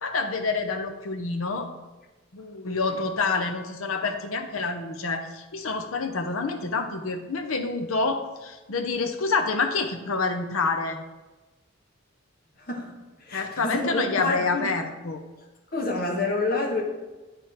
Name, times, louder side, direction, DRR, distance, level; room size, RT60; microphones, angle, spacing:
voice 1, 0.0-1.7 2.3-11.0 13.3-15.2, left 4 dB, 90° left, 5 dB, 0.8 m, -27 dB
voice 2, 12.6-12.9 13.2-14.7 15.7-16.8, left 2 dB, 45° left, 0 dB, 1.3 m, -28 dB
10.0 x 3.5 x 4.4 m, 1.2 s
head